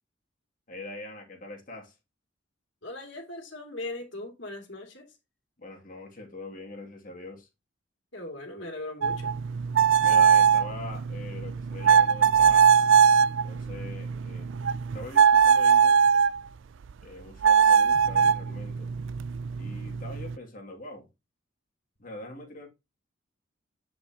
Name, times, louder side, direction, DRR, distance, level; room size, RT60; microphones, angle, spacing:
voice 1, 0.7-1.9 5.6-7.5 10.0-12.8 13.4-14.6 14.9-16.3 17.0-18.9 19.6-21.1 22.0-22.7, left 2 dB, 45° left, 2.6 m, -43 dB
voice 2, 2.8-5.1 8.1-9.3, left 2 dB, 65° left, 2.9 m, -39 dB
sound 1, 9.0-16.4 17.4-20.4, right 7 dB, 70° right, 0.4 m, -21 dB
9.7 x 5.7 x 3.0 m
head